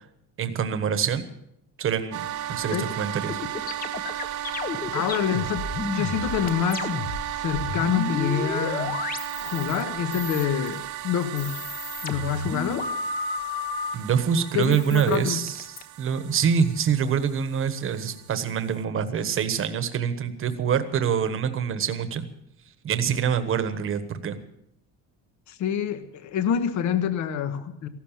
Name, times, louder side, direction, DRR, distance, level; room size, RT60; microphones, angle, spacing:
voice 1, 0.4-1.3 1.8-3.4 13.9-15.6 16.0-22.3 22.8-24.4, right 7 dB, 40° right, 11 dB, 1.3 m, -25 dB
sound 1, 2.1-18.8, right 12 dB, 55° right, 1.1 m, -35 dB
voice 2, 2.5-2.9 4.9-5.7 5.9-6.9 7.3-9.0 9.4-11.6 12.0-12.9 14.5-15.4 25.5-27.9, left 8 dB, 55° left, 10 dB, 1.3 m, -27 dB
sound 2, 3.3-9.8 10.1-10.8 11.2-13.9 14.6-15.8, left 4 dB, 25° left, 1.1 m, -32 dB
15.0 x 12.0 x 7.4 m, 0.77 s
cardioid pair, 165°, 34 cm